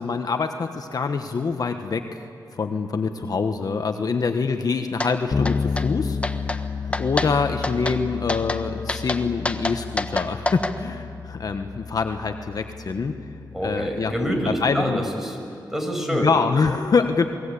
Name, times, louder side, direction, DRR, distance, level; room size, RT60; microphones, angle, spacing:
voice 1, 0.0-2.2 2.5-13.1 13.6-14.1 14.5-15.1 16.1-17.2, left 5 dB, 55° left, 6 dB, 1.3 m, -25 dB
sound 1, 5.0-5.1 5.5-5.9 6.2-6.6 6.9-7.3 7.6-8.0 8.3-8.6 8.9-10.7, left 2 dB, 15° left, 1.4 m, -27 dB
Bass guitar, 5.3-15.0, left 5 dB, 35° left, 0.6 m, -32 dB
voice 2, 13.5-15.4 15.7-16.3, equal, 5° right, 2 dB, 5.9 m, -26 dB
28.0 x 20.0 x 8.5 m, 2.4 s
cardioid pair, 75°, 8 cm